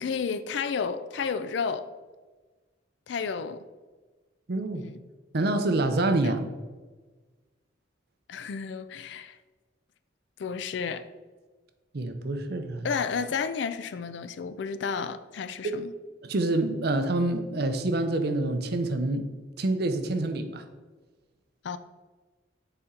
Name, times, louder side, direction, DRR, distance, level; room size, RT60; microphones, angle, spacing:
voice 1, 0.0-1.9 3.1-3.6 4.7-5.0 6.2-6.3 8.3-9.4 10.4-11.1 12.8-15.9 21.6-21.8, left 5 dB, 65° left, 13 dB, 0.4 m, -31 dB
voice 2, 4.5-4.8 5.3-6.5 11.9-12.9 15.6-15.7 16.2-19.3 19.6-20.6, right 2 dB, 55° right, 8 dB, 0.6 m, -27 dB
6.8 x 4.3 x 3.7 m, 1.3 s
head